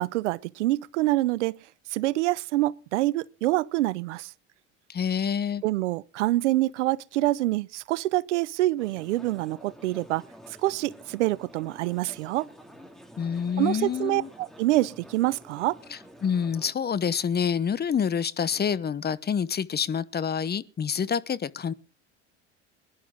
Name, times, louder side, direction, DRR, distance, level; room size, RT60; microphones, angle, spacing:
voice 1, 0.0-1.6 1.9-4.3 5.6-10.2 10.6-12.5 13.6-15.8, right 17 dB, 85° right, 0.6 m, -26 dB
voice 2, 4.9-5.6 13.2-14.3 15.9-21.7, left 7 dB, 30° left, 0.9 m, -27 dB
sound 1, 8.8-16.7, equal, ahead, 2.5 m, -49 dB
21.0 x 11.0 x 3.8 m
hypercardioid pair, 75°, 35 cm